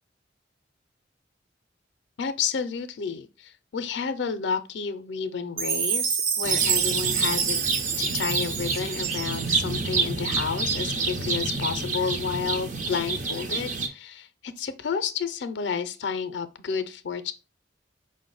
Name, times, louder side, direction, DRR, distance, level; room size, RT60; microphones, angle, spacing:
voice 1, 2.2-7.6 8.0-17.3, left 6 dB, 70° left, 0.4 m, -31 dB
Chime, 5.6-9.8, right 7 dB, 85° right, 0.5 m, -27 dB
sound 1, 6.4-13.9, right 3 dB, 40° right, 0.5 m, -28 dB
5.1 x 2.1 x 3.8 m
head